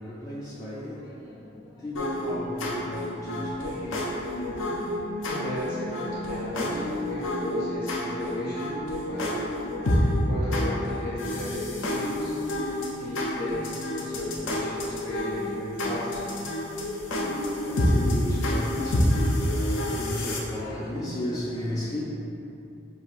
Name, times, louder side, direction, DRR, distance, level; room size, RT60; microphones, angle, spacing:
voice 1, 0.0-4.6 17.2-22.0, left 1 dB, 15° left, -9 dB, 0.3 m, -35 dB
sound 1, 1.9-20.4, left 1 dB, 75° left, 0.5 m, -28 dB
voice 2, 5.3-9.4 10.2-12.3 13.0-16.3, left 1 dB, 50° left, -9 dB, 1.4 m, -35 dB
5.6 x 2.6 x 2.4 m, 2.7 s
head